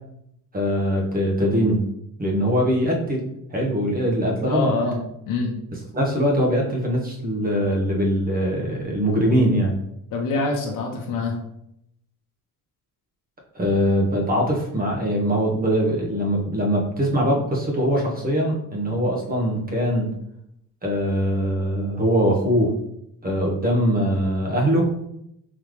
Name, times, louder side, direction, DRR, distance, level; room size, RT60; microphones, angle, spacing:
voice 1, 0.5-1.8 2.2-4.7 5.9-9.7 13.5-20.1 20.8-22.7 23.2-24.9, equal, 25° right, -1 dB, 1.1 m, -22 dB
voice 2, 4.5-5.5 10.1-11.4, left 3 dB, 55° left, 0 dB, 0.9 m, -25 dB
3.9 x 3.2 x 3.2 m, 0.78 s
cardioid pair, 110°, 39 cm